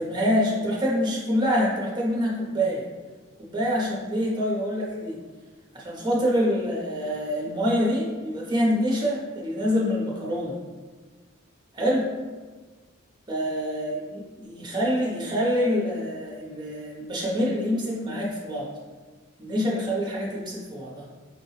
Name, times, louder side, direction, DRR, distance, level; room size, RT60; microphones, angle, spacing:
voice 1, 0.0-2.8 3.4-5.2 5.7-10.6 11.7-12.1 13.3-18.7 19.4-21.0, equal, 20° right, -4 dB, 0.8 m, -26 dB
5.5 x 2.2 x 3.1 m, 1.4 s
head